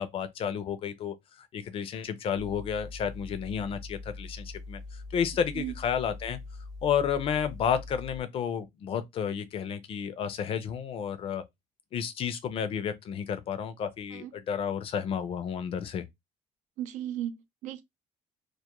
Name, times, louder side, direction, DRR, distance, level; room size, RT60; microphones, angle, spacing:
voice 1, 0.0-6.4 6.8-11.4 11.9-16.1, left 8 dB, 45° left, 0.4 m, -31 dB
sound 1, 2.3-8.2, left 3 dB, 30° right, 0.7 m, -43 dB
voice 2, 16.8-17.8, right 11 dB, 75° right, 0.4 m, -36 dB
2.2 x 2.1 x 2.8 m
cardioid pair, 140°, 13 cm